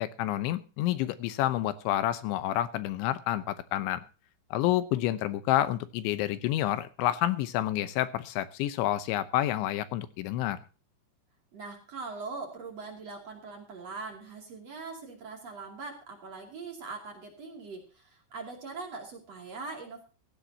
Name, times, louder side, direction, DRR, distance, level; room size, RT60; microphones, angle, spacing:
voice 1, 0.0-4.0 4.5-10.6, left 13 dB, 80° left, 13 dB, 3.2 m, -29 dB
voice 2, 11.5-20.0, right 4 dB, 40° right, 2 dB, 3.1 m, -41 dB
16.5 x 15.5 x 2.8 m, 0.33 s
omnidirectional pair, 5.4 m